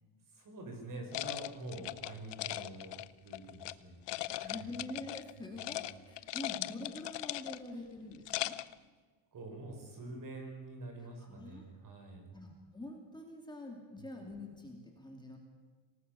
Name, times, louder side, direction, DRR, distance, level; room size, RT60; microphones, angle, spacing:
voice 1, 0.3-4.8 5.4-6.0 7.7-7.8 9.3-12.3 14.0-14.1, right 2 dB, 40° right, 3 dB, 5.9 m, -47 dB
sound 1, 1.1-3.7 4.1-5.3 5.6-5.9 6.2-7.7 8.1-8.7, left 16 dB, 60° left, 0.7 m, -39 dB
voice 2, 4.2-8.6 11.0-11.7 12.3-15.4, left 1 dB, 10° left, 1 dB, 2.5 m, -46 dB
25.5 x 18.5 x 6.9 m, 1.4 s
cardioid pair, 170°, 47 cm